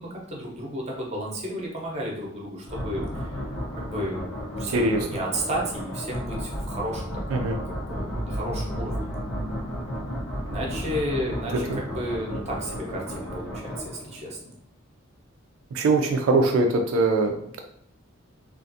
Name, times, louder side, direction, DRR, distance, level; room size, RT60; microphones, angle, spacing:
voice 1, 0.0-3.3 3.8-9.1 10.5-14.5, equal, 30° right, -2 dB, 0.7 m, -33 dB
sound 1, 2.6-14.3, equal, 80° left, 0.7 m, -33 dB
voice 2, 4.7-5.0 7.3-7.6 11.7-11.8 15.7-17.6, right 3 dB, 90° right, 3 dB, 0.4 m, -22 dB
2.5 x 2.4 x 2.6 m, 0.70 s
head